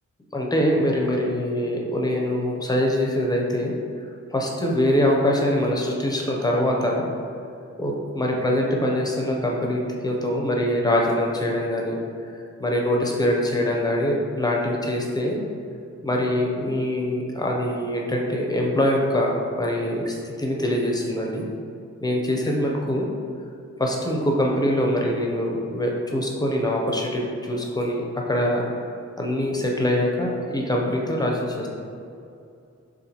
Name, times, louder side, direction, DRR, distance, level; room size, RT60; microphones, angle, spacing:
voice 1, 0.3-3.7 4.3-7.0 7.8-12.0 12.3-15.4 16.0-21.5 22.0-23.1 23.8-28.9 29.2-31.7, left 1 dB, 15° left, -1 dB, 0.5 m, -24 dB
6.8 x 2.5 x 2.8 m, 2.5 s
wide cardioid pair, 145°, 29 cm